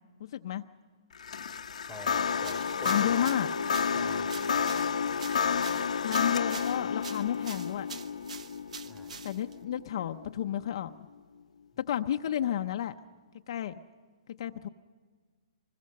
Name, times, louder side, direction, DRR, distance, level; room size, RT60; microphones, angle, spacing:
voice 1, 0.2-0.6 2.8-3.5 6.0-7.9 9.2-10.9 11.8-12.9 13.5-13.8 14.3-14.7, left 10 dB, 45° left, 6 dB, 0.6 m, -31 dB
sound 1, 1.1-10.5, left 6 dB, 90° left, 0.9 m, -31 dB
voice 2, 1.9-3.3 3.9-4.4 8.8-9.2, left 1 dB, 5° right, 4 dB, 1.3 m, -46 dB
sound 2, 2.4-9.6, right 5 dB, 80° right, 1.1 m, -46 dB
24.5 x 20.5 x 6.5 m, 1.5 s
hypercardioid pair, 170°, 4 cm